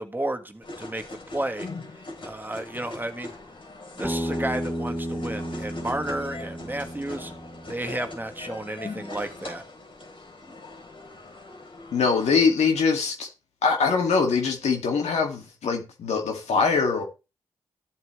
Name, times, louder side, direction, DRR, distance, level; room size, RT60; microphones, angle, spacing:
voice 1, 0.0-1.7 2.2-3.3 4.0-7.3 7.7-9.6, right 1 dB, 15° right, 1.7 m, -32 dB
sound 1, 0.6-12.4, left 2 dB, 50° left, 3.8 m, -41 dB
Bass guitar, 4.0-8.3, equal, ahead, 3.7 m, -33 dB
voice 2, 11.9-13.3 13.6-17.0, left 5 dB, 85° left, 2.3 m, -23 dB
13.0 x 7.6 x 3.2 m
supercardioid pair, 45°, 11 cm